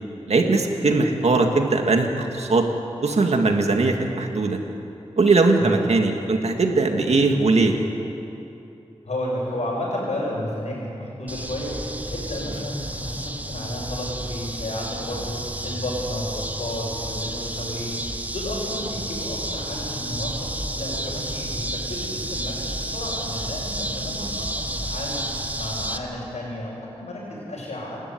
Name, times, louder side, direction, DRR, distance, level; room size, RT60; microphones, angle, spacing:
voice 1, 0.3-2.7 3.0-4.6 5.2-7.7, right 3 dB, 70° right, 3 dB, 2.1 m, -20 dB
voice 2, 9.0-11.7 12.1-15.3 15.6-17.9 18.3-25.3 25.6-28.0, left 1 dB, 75° left, -9 dB, 6.6 m, -32 dB
sound 1, 11.3-26.0, right 1 dB, 15° right, 1.3 m, -31 dB
28.0 x 12.5 x 9.5 m, 2.9 s
wide cardioid pair, 105°, 11 cm